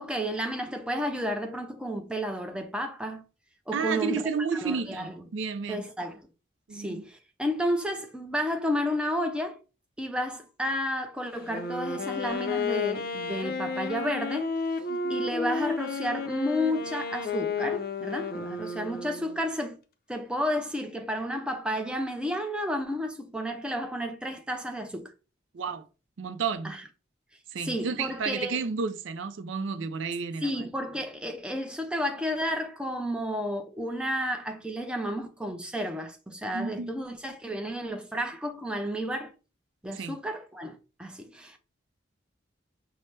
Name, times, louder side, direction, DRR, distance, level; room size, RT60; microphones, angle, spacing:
voice 1, 0.0-3.2 3.7-4.2 4.6-5.3 5.7-6.3 6.7-9.6 10.0-14.5 15.1-19.8 20.1-25.1 26.6-26.8 27.6-28.6 30.4-39.3 39.8-41.6, equal, 5° right, 0.4 m, -32 dB
voice 2, 3.7-5.9 6.7-7.0 14.9-15.2 25.5-25.8 26.2-26.7 27.5-30.6 36.5-37.0 39.9-40.1, right 5 dB, 85° right, 0.4 m, -32 dB
Wind instrument woodwind instrument, 11.4-19.5, left 4 dB, 50° left, 0.5 m, -32 dB
5.6 x 2.0 x 3.2 m
head